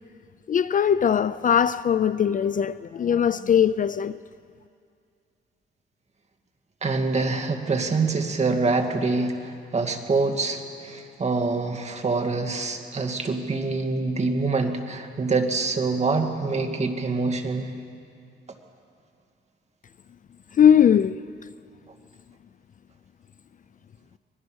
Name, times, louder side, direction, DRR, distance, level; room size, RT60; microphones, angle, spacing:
voice 1, 0.5-4.2 20.5-21.2, left 8 dB, 45° left, 0.4 m, -20 dB
voice 2, 6.8-17.7, right 3 dB, 35° right, 2.0 m, -25 dB
24.5 x 19.5 x 6.3 m
cardioid pair, 110°, 20 cm